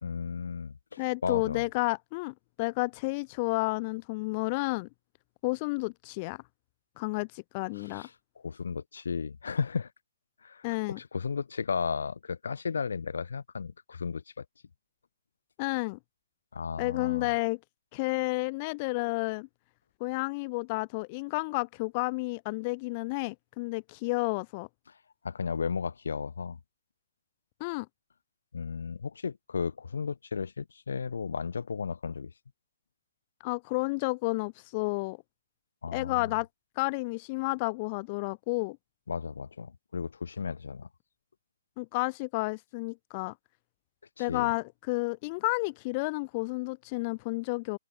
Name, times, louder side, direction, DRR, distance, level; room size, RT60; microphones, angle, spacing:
voice 1, 0.0-1.6 7.9-8.1 8.4-9.9 10.4-14.4 16.5-17.3 25.2-26.6 28.5-32.3 35.8-36.3 39.1-40.9 44.2-44.5, left 5 dB, 70° left, 1.5 m, -34 dB
voice 2, 1.0-4.9 5.4-6.4 7.0-8.1 10.6-11.0 15.6-16.0 16.8-17.6 17.9-19.5 20.0-24.7 27.6-27.9 33.4-35.2 35.9-36.5 36.8-38.8 41.8-43.3 44.2-47.8, left 26 dB, 25° left, 0.8 m, -31 dB
open air
hypercardioid pair, 165°, 0 cm